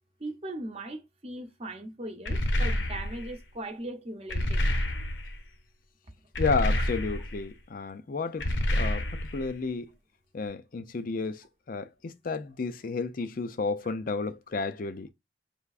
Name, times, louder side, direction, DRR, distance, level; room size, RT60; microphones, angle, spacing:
voice 1, 0.2-4.7 6.8-6.9 8.4-8.5 13.8-13.9, right 1 dB, 30° right, 0.8 m, -39 dB
sound 1, 2.3-3.3 4.3-5.4 6.4-7.4 8.4-9.5, left 1 dB, 65° left, 0.9 m, -28 dB
voice 2, 6.4-8.5 8.7-9.1 9.3-9.9 10.3-15.1, left 4 dB, 45° left, 0.4 m, -32 dB
5.6 x 3.4 x 2.4 m
head